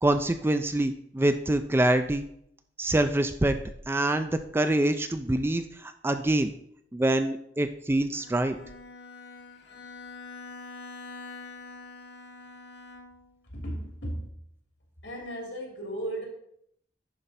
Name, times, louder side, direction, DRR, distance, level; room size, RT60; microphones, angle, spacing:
voice 1, 0.0-2.2 2.8-3.6 3.9-6.5 6.9-8.6, right 1 dB, 15° right, 8 dB, 0.3 m, -25 dB
Bowed string instrument, 8.1-13.4, left 3 dB, 65° left, 0.9 m, -45 dB
voice 2, 13.5-14.4 15.0-16.3, right 1 dB, 90° left, 0 dB, 2.8 m, -35 dB
11.0 x 4.5 x 4.1 m, 0.72 s
head